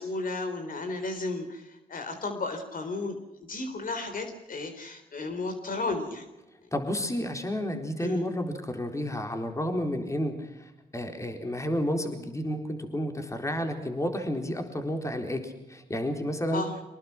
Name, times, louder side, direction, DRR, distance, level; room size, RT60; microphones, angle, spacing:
voice 1, 0.0-6.2 6.6-6.7 8.0-8.3 16.5-16.8, left 3 dB, 55° left, 6 dB, 4.0 m, -34 dB
voice 2, 6.7-16.6, equal, 20° left, 4 dB, 4.0 m, -31 dB
24.5 x 20.0 x 6.1 m, 0.98 s
cardioid pair, 60°, 16 cm